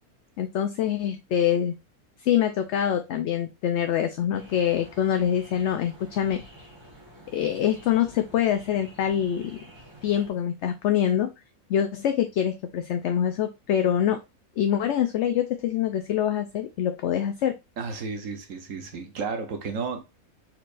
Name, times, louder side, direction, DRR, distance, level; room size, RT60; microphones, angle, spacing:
voice 1, 0.4-1.7 2.2-6.4 7.3-9.6 10.0-11.3 11.7-14.2 14.6-17.5, left 10 dB, 65° left, 0.8 m, -25 dB
sound 1, 4.3-10.3, equal, 20° right, 1.5 m, -49 dB
voice 2, 17.8-20.0, right 5 dB, 70° right, 1.3 m, -32 dB
4.5 x 4.4 x 2.5 m
omnidirectional pair, 1.5 m